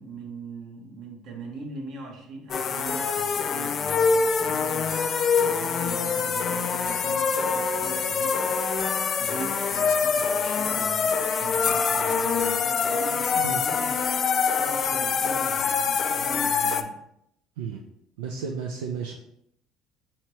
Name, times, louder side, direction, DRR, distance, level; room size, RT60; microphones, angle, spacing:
voice 1, 0.0-8.6 9.2-14.0 14.2-17.0, right 3 dB, 60° right, 0 dB, 1.0 m, -41 dB
sound 1, 2.5-16.8, left 5 dB, 45° left, 0.3 m, -25 dB
voice 2, 18.2-19.2, right 5 dB, 85° right, 1 dB, 0.3 m, -32 dB
4.5 x 2.8 x 3.1 m, 0.77 s
supercardioid pair, 75°, 0 cm